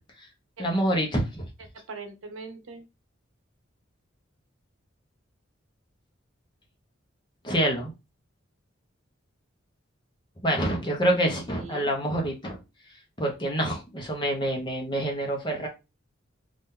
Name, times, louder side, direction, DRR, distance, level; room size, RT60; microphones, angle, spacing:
voice 1, 0.6-1.5 7.4-7.9 10.4-12.6 13.2-15.7, right 1 dB, 25° left, 0 dB, 0.9 m, -26 dB
voice 2, 1.7-2.8 11.5-11.9, right 3 dB, 80° right, 6 dB, 0.7 m, -41 dB
2.8 x 2.5 x 3.6 m, 0.26 s
head